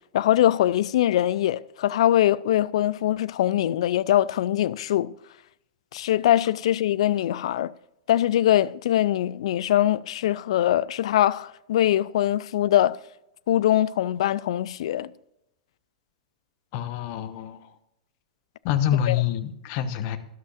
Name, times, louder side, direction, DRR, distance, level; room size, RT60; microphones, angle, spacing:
voice 1, 0.1-5.1 5.9-7.7 8.1-13.0 13.5-15.1 19.1-19.2, left 12 dB, 60° left, 0.4 m, -22 dB
voice 2, 16.7-17.7 18.6-20.2, left 10 dB, 45° left, 1.0 m, -26 dB
12.5 x 11.5 x 2.5 m
figure-of-eight pair, 100°, 3 cm